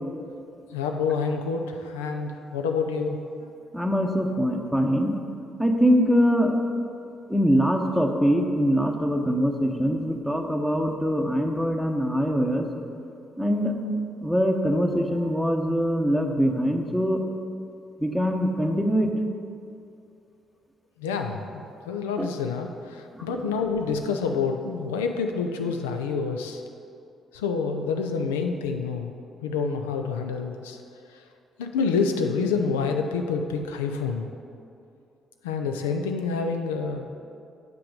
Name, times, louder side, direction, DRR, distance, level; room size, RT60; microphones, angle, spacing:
voice 1, 0.7-3.5 21.0-26.6 27.3-29.1 29.4-30.8 31.1-31.2 31.6-34.2 35.4-37.1, left 5 dB, 90° left, 5 dB, 0.5 m, -28 dB
voice 2, 3.7-5.2 5.6-6.6 7.3-12.7 13.4-13.7 14.2-17.2 18.0-19.1 22.2-22.3 23.1-23.5, equal, ahead, 3 dB, 1.1 m, -23 dB
7.8 x 5.9 x 5.0 m, 2.6 s
hypercardioid pair, 50°, 0 cm